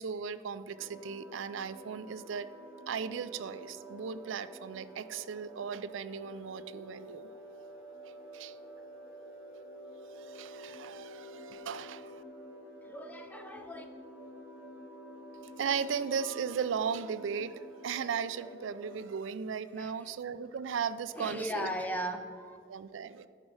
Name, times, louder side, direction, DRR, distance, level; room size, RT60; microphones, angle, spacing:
voice 1, 0.0-2.5 2.9-7.3 8.3-8.6 10.2-12.2 15.6-21.7 22.7-23.3, right 6 dB, 90° right, 14 dB, 0.4 m, -36 dB
sound 1, 0.7-19.1, equal, 10° right, 2.0 m, -49 dB
voice 2, 12.8-13.8 19.8-19.9 21.2-22.6, equal, 10° left, 6 dB, 0.5 m, -37 dB
10.5 x 5.2 x 4.8 m, 2.3 s
head